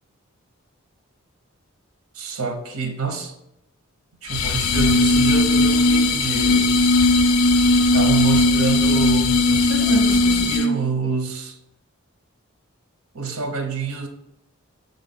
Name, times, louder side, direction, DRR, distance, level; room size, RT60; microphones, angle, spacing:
voice 1, 2.1-3.3 4.2-6.8 7.9-11.6 13.1-14.1, right 4 dB, 85° right, 5 dB, 0.8 m, -27 dB
sound 1, 4.3-10.8, left 2 dB, 80° left, 0.5 m, -17 dB
6.6 x 3.9 x 4.1 m, 0.83 s
head